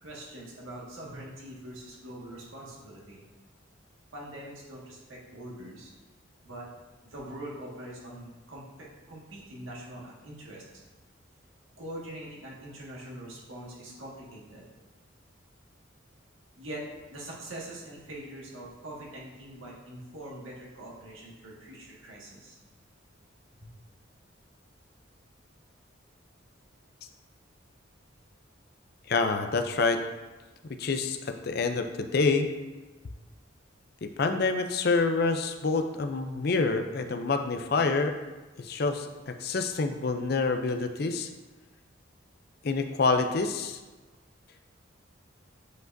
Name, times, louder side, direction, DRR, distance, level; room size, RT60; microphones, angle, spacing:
voice 1, 0.0-3.3 4.1-5.9 6.4-6.7 7.0-10.6 11.8-14.7 16.6-16.8 17.1-22.6 23.6-23.7, right 1 dB, 90° right, -4 dB, 1.7 m, -43 dB
voice 2, 29.1-30.0 30.8-32.5 34.0-38.1 38.6-41.3 42.6-43.8, left 4 dB, 50° left, 7 dB, 0.4 m, -27 dB
8.1 x 4.9 x 2.6 m, 1.2 s
head